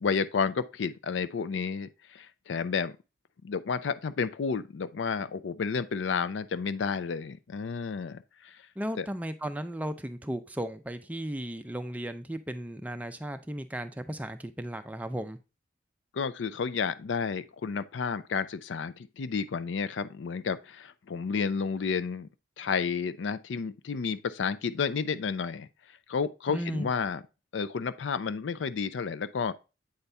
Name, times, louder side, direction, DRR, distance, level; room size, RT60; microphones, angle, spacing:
voice 1, 0.0-3.0 3.4-8.6 9.0-9.1 16.1-22.3 22.6-25.7 26.1-27.2 27.5-29.5, left 5 dB, 85° left, 0.4 m, -31 dB
voice 2, 8.8-15.4 26.5-26.9, right 1 dB, 10° right, 0.4 m, -35 dB
7.9 x 4.1 x 3.3 m
head